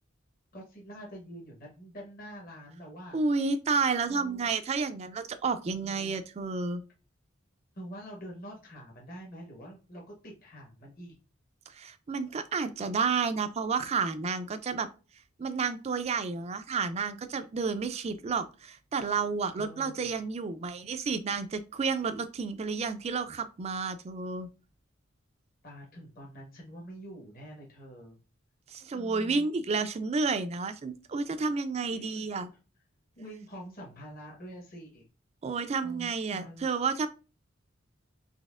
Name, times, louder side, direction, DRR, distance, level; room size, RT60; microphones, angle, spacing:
voice 1, 0.5-3.2 4.1-4.5 5.7-6.2 7.8-11.1 19.6-20.1 25.6-28.2 28.9-29.5 31.8-32.3 33.2-35.0 35.8-36.7, equal, 45° left, 1.0 m, -46 dB
voice 2, 3.1-6.8 11.7-14.9 15.4-24.5 28.7-32.5 35.4-37.1, right 4 dB, 30° right, 0.3 m, -31 dB
4.0 x 2.8 x 2.4 m
head